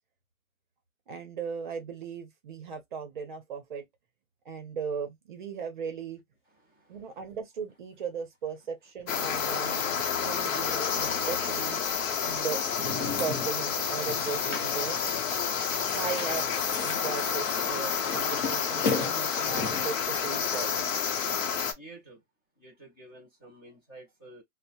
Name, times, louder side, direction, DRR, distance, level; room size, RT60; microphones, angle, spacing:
voice 1, 1.1-3.8 4.5-6.2 6.9-9.9 10.2-11.8 12.2-15.2 15.9-16.5 16.8-20.9, right 6 dB, 35° right, 0.6 m, -37 dB
voice 2, 6.7-7.0 21.8-22.2 22.6-24.4, right 2 dB, 20° left, 0.4 m, -50 dB
sound 1, 9.1-21.7, left 7 dB, 70° left, 0.7 m, -29 dB
sound 2, 11.0-11.2 12.6-13.6 14.0-14.8 15.2-15.3 15.6-20.0, left 4 dB, 40° left, 0.9 m, -36 dB
2.6 x 2.0 x 2.7 m
hypercardioid pair, 170°, 40 cm